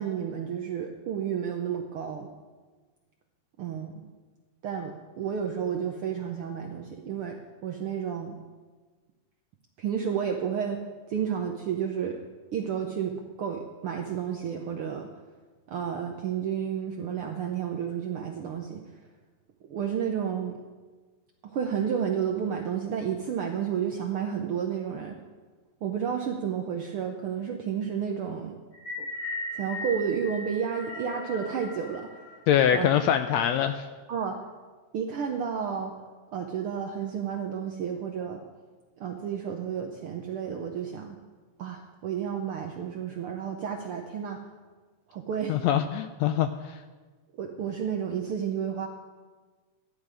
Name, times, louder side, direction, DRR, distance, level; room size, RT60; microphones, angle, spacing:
voice 1, 0.0-2.3 3.6-4.1 4.6-7.4 7.6-8.4 9.8-10.8 11.1-12.2 12.5-15.1 15.7-18.8 19.6-20.6 21.4-25.2 25.8-28.5 29.0-29.1 29.5-32.2 32.7-32.9 34.1-34.4 34.9-36.0 36.3-38.4 39.0-41.2 41.6-44.4 45.1-45.6 47.4-48.9, right 8 dB, 75° right, 2 dB, 1.3 m, -31 dB
sound 1, 28.7-33.0, left 1 dB, 50° left, 5.4 m, -38 dB
voice 2, 32.5-33.9 45.5-46.8, left 9 dB, 80° left, 9 dB, 1.6 m, -24 dB
13.5 x 10.5 x 4.9 m, 1.3 s
omnidirectional pair, 3.4 m